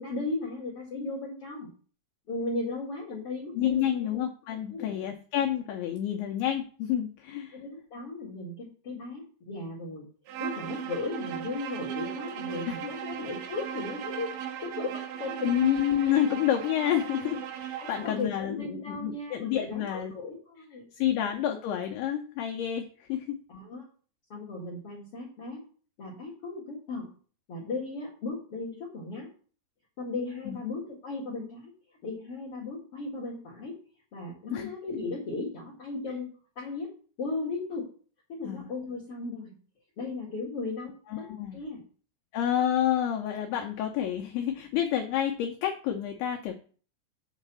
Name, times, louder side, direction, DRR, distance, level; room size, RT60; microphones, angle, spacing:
voice 1, 0.0-1.7 2.3-4.1 4.7-4.9 7.5-10.1 10.4-14.3 14.6-15.5 17.8-21.1 23.5-23.8 24.3-25.6 26.0-27.1 27.5-29.3 30.0-31.7 32.0-33.8 34.1-36.3 36.6-36.9 37.2-37.8 38.3-39.5 40.0-41.8, left 3 dB, 45° left, -5 dB, 2.1 m, -36 dB
voice 2, 3.6-7.6 12.7-12.8 15.4-20.1 21.0-23.4 30.5-30.6 34.5-34.7 38.4-38.7 41.1-41.6 42.3-46.6, left 10 dB, 90° left, 3 dB, 2.2 m, -29 dB
Bowed string instrument, 10.3-18.2, right 9 dB, 75° right, 3.1 m, -37 dB
8.3 x 4.0 x 6.8 m, 0.42 s
omnidirectional pair, 5.5 m